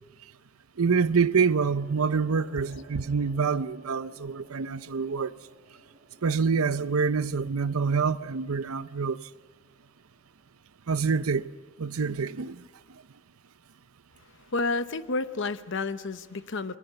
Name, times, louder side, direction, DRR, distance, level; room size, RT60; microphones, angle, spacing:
voice 1, 0.8-5.3 6.2-9.2 10.9-11.5 11.8-12.6, right 5 dB, 85° right, 0.7 m, -26 dB
sound 1, 1.7-10.5, right 1 dB, 45° right, 4.4 m, -56 dB
voice 2, 14.5-16.8, left 3 dB, 60° left, 0.9 m, -30 dB
29.5 x 22.5 x 6.9 m
head